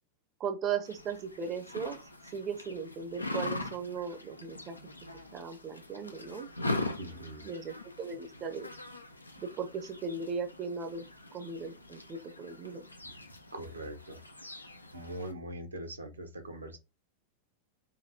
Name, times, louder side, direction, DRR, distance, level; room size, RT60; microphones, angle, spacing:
voice 1, 0.4-2.0 2.3-4.8 5.3-6.5 7.4-8.7 9.4-11.0 11.3-12.8, right 5 dB, 30° right, 7 dB, 0.6 m, -37 dB
sound 1, 0.8-15.3, left 2 dB, 85° left, 0.5 m, -42 dB
voice 2, 7.0-7.5 13.0-13.1 13.5-14.2 14.9-16.8, right 1 dB, 80° right, 5 dB, 0.9 m, -42 dB
5.0 x 2.6 x 2.7 m, 0.26 s
figure-of-eight pair, 90°, 0 cm